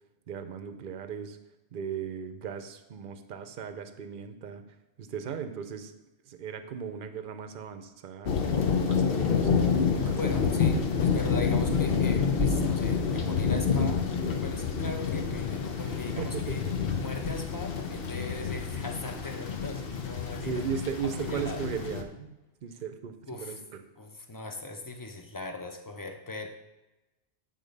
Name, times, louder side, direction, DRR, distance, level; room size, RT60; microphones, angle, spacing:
voice 1, 0.3-1.4 1.7-4.6 5.0-5.9 6.3-10.6 11.4-11.8 15.9-16.6 20.3-23.8, right 7 dB, 55° right, 9 dB, 0.8 m, -37 dB
sound 1, 8.3-22.0, left 6 dB, 60° left, 1.0 m, -28 dB
voice 2, 10.2-14.1 14.4-16.6 17.0-20.5 21.2-21.6 23.3-23.6 24.0-26.5, left 2 dB, 20° left, 4 dB, 0.6 m, -39 dB
8.5 x 3.9 x 5.3 m, 1.0 s
omnidirectional pair, 1.1 m